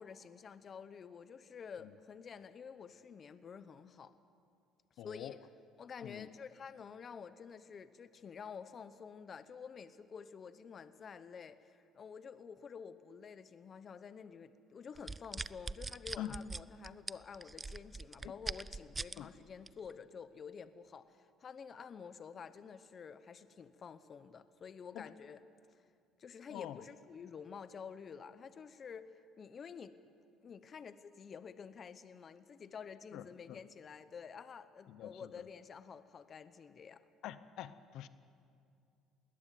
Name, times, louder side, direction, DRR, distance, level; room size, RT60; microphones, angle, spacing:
voice 1, 0.0-4.1 5.0-5.4 5.8-25.4 25.7-25.8 26.2-30.1 30.4-37.0, left 6 dB, 35° left, 13 dB, 0.9 m, -50 dB
voice 2, 5.0-5.3 6.0-6.3 16.2-16.4 18.2-18.3 19.2-19.3 24.9-25.1 26.5-26.8 33.1-33.6 34.9-35.3 37.2-38.1, left 12 dB, 70° left, 14 dB, 0.9 m, -45 dB
sound 1, 15.0-19.2 19.7-19.9, right 3 dB, 20° right, 0.5 m, -42 dB
20.0 x 19.5 x 9.2 m, 2.5 s
cardioid pair, 120°, 0 cm